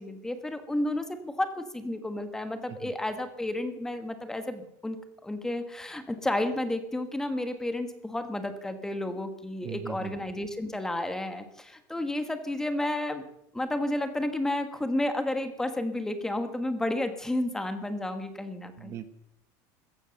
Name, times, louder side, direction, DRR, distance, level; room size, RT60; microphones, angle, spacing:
voice 1, 0.0-13.2 13.5-19.0, left 1 dB, 5° left, 8 dB, 1.4 m, -31 dB
voice 2, 9.6-10.2 18.8-19.1, right 9 dB, 35° right, 11 dB, 1.1 m, -39 dB
15.0 x 13.5 x 6.6 m, 0.75 s
cardioid pair, 160°, 9 cm